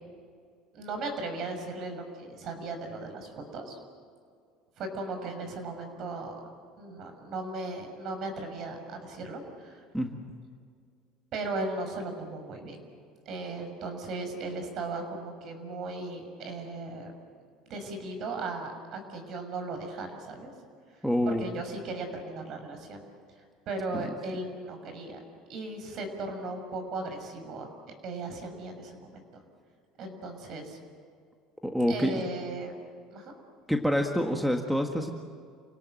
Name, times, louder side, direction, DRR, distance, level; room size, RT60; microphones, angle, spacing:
voice 1, 0.7-3.8 4.8-6.4 6.8-9.8 11.3-12.8 13.3-17.1 17.7-20.5 21.3-23.0 23.7-25.2 25.5-27.7 28.0-29.4 30.0-30.8 31.9-32.7 33.1-33.4, right 2 dB, 50° right, 5 dB, 6.1 m, -37 dB
voice 2, 21.0-21.4 23.9-24.1 31.6-32.2 33.7-35.1, equal, ahead, 3 dB, 1.7 m, -27 dB
29.5 x 17.5 x 7.9 m, 2.1 s
cardioid pair, 130°, 0 cm